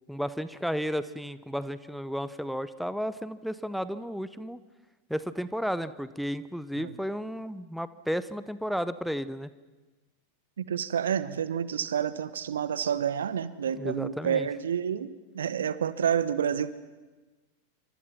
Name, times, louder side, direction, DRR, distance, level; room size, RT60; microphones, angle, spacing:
voice 1, 0.1-4.6 5.1-9.5 13.8-14.5, equal, ahead, 14 dB, 0.9 m, -33 dB
voice 2, 10.6-16.7, right 8 dB, 65° right, 16 dB, 1.1 m, -29 dB
28.5 x 25.5 x 5.9 m, 1.2 s
figure-of-eight pair, 90°, 0 cm